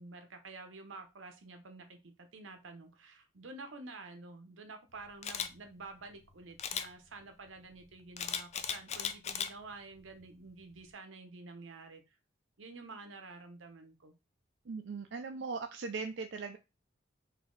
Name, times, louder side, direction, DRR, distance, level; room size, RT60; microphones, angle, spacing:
voice 1, 0.0-12.1 12.6-14.2, right 3 dB, 90° right, 6 dB, 0.8 m, -49 dB
Camera, 5.2-5.5 6.6-6.9 8.2-9.5 10.0-10.2, left 8 dB, 35° left, 0.4 m, -36 dB
voice 2, 14.7-16.6, right 4 dB, 65° right, 5 dB, 0.4 m, -39 dB
4.0 x 2.7 x 3.8 m, 0.26 s
head